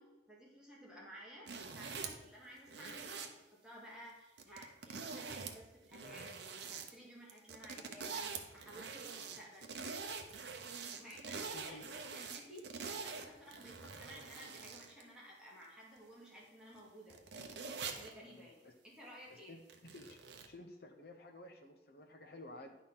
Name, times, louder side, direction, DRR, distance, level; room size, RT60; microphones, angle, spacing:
voice 1, 0.0-6.3 6.7-9.7 11.0-12.7 13.0-17.2 17.9-19.5, equal, 5° right, -5 dB, 2.0 m, -55 dB
sound 1, 1.5-2.2 2.7-3.3 4.4-5.6 5.8-6.9 7.3-15.0 15.6-15.7 16.8-16.9 17.1-18.1 19.7-20.5, right 5 dB, 70° right, 0.9 m, -45 dB
voice 2, 11.5-11.8 18.2-18.7 19.3-19.6 19.9-20.2 20.5-22.8, left 2 dB, 55° left, 4 dB, 0.8 m, -53 dB
10.5 x 4.3 x 5.5 m, 1.2 s
head